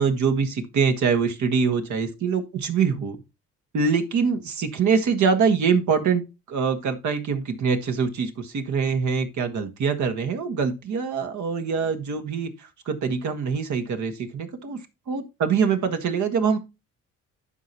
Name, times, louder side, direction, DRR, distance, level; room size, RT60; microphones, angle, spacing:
voice 1, 0.0-3.2 3.7-14.8 15.1-16.6, right 5 dB, 70° right, 1.7 m, -24 dB
11.5 x 5.6 x 2.9 m
cardioid pair, 90°, 30 cm